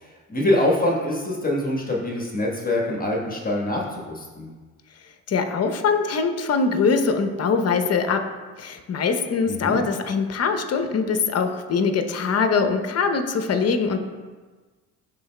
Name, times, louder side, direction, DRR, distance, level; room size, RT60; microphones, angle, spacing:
voice 1, 0.3-4.5 9.5-9.8, left 1 dB, 20° left, -2 dB, 1.3 m, -24 dB
voice 2, 5.3-8.2 8.6-14.0, left 5 dB, 40° left, 7 dB, 0.8 m, -22 dB
11.0 x 3.9 x 2.2 m, 1.3 s
hypercardioid pair, 50°, 40 cm